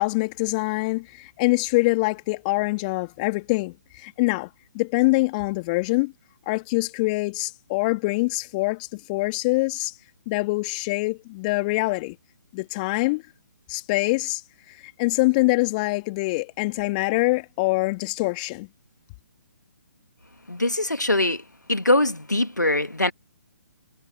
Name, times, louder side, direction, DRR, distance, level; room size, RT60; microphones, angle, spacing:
voice 1, 0.0-4.5 4.7-6.1 6.5-9.9 10.3-12.2 12.5-13.2 13.7-14.4 15.0-18.7, left 24 dB, 25° left, 3.2 m, -24 dB
voice 2, 20.5-21.4 21.7-23.1, left 1 dB, 90° left, 1.7 m, -22 dB
figure-of-eight pair, 135°, 9 cm